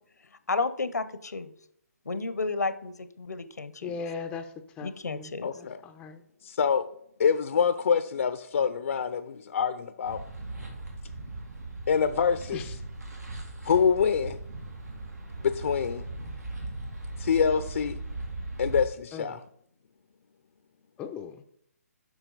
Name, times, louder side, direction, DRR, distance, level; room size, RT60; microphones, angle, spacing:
voice 1, 0.5-1.5 2.1-4.0 4.8-5.5, left 3 dB, 85° left, 13 dB, 0.8 m, -32 dB
voice 2, 3.8-4.5 4.8-5.3 5.6-6.2 12.5-12.6 19.1-19.2 21.0-21.4, left 5 dB, 10° left, 7 dB, 0.5 m, -38 dB
voice 3, 5.4-5.8 6.4-6.9 7.2-10.2 11.9-12.8 13.6-14.4 15.4-16.0 17.2-18.0 18.6-19.4, left 6 dB, 60° left, 10 dB, 0.5 m, -25 dB
sound 1, 10.0-18.9, right 2 dB, 85° right, 2.5 m, -38 dB
8.1 x 6.1 x 3.9 m, 0.68 s
figure-of-eight pair, 145°, 9 cm